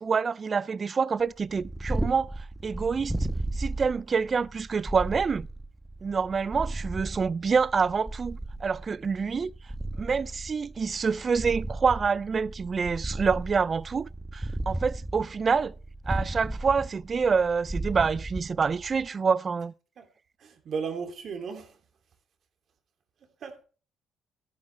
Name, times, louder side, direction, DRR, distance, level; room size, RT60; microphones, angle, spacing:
voice 1, 0.0-3.2 3.5-5.5 6.0-9.5 10.0-15.7 16.1-19.7, right 5 dB, 35° right, 0.4 m, -27 dB
Purr, 1.4-19.1, right 1 dB, 5° right, 1.2 m, -35 dB
voice 2, 20.4-21.8 23.4-23.6, right 5 dB, 55° right, 2.7 m, -35 dB
12.5 x 11.0 x 3.3 m
cardioid pair, 95°, 0 cm